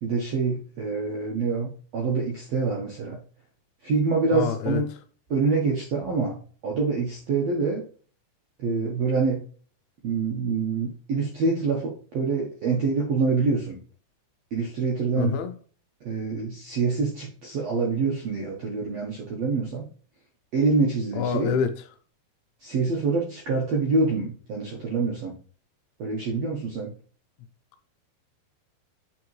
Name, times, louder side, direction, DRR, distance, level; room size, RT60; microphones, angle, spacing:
voice 1, 0.0-3.2 3.8-4.9 5.3-6.4 6.6-7.8 8.6-9.4 10.0-13.8 14.5-15.4 16.0-19.9 20.5-21.5 22.6-25.4 26.0-26.9, right 4 dB, 75° right, 1.5 m, -26 dB
voice 2, 4.3-4.8 15.2-15.5 21.1-21.7, left 7 dB, 90° left, 2.6 m, -26 dB
8.5 x 3.7 x 3.1 m
omnidirectional pair, 4.4 m